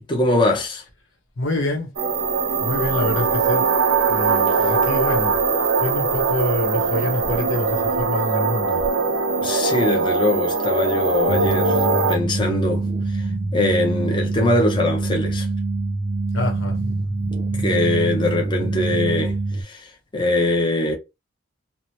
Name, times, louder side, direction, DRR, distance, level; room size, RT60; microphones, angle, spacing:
voice 1, 0.1-0.8 9.4-15.5 17.5-21.0, left 1 dB, 25° left, 0.6 m, -22 dB
voice 2, 1.4-1.9 2.6-3.7 4.1-5.4 5.8-8.8 16.3-16.8, left 1 dB, 90° left, 1.0 m, -26 dB
sound 1, 2.0-12.2, right 4 dB, 80° right, 0.6 m, -21 dB
sound 2, 11.3-19.6, right 3 dB, 40° right, 0.5 m, -25 dB
2.9 x 2.1 x 2.9 m
head